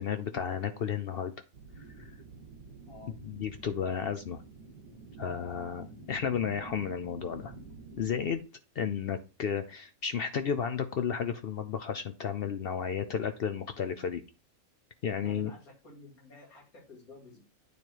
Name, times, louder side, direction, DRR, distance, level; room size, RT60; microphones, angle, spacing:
voice 1, 0.0-1.3 3.2-4.4 5.2-7.5 8.0-8.4 8.8-14.2 15.0-15.5, left 7 dB, 60° left, 9 dB, 0.6 m, -33 dB
sound 1, 1.5-8.4, right 4 dB, 90° right, 1.9 m, -49 dB
voice 2, 2.9-3.2 15.2-17.4, left 3 dB, 90° left, -1 dB, 3.0 m, -52 dB
9.4 x 3.2 x 4.5 m, 0.30 s
omnidirectional pair, 1.5 m